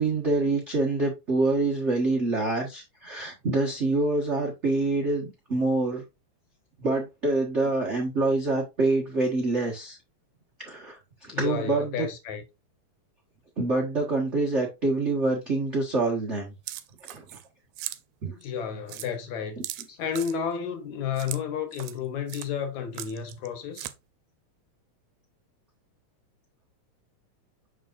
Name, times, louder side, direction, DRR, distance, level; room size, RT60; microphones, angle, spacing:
voice 1, 0.0-6.0 6.8-10.0 10.6-12.1 13.6-16.5 17.1-17.4 18.2-18.3 19.6-19.7, right 2 dB, 60° right, 0.7 m, -26 dB
voice 2, 11.3-12.4 18.2-19.6 20.0-23.9, left 7 dB, 70° left, 2.4 m, -32 dB
sound 1, 16.7-17.5 17.8-18.0 18.4-18.5 18.9-19.1 19.6-20.4 21.2-21.4 21.7-22.0 22.3-22.5 22.9-23.5 23.8-23.9, right 14 dB, 80° right, 2.0 m, -38 dB
6.6 x 6.1 x 2.5 m
omnidirectional pair, 3.6 m